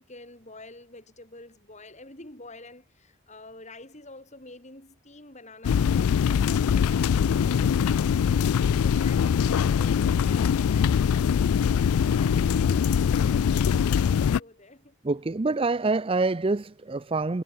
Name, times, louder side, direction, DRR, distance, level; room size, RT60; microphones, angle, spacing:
voice 1, 0.0-8.1 8.8-14.9, left 1 dB, 30° left, 5.0 m, -46 dB
sound 1, 5.6-14.4, left 7 dB, 80° left, 0.3 m, -22 dB
voice 2, 15.0-17.4, right 3 dB, 25° right, 0.5 m, -26 dB
head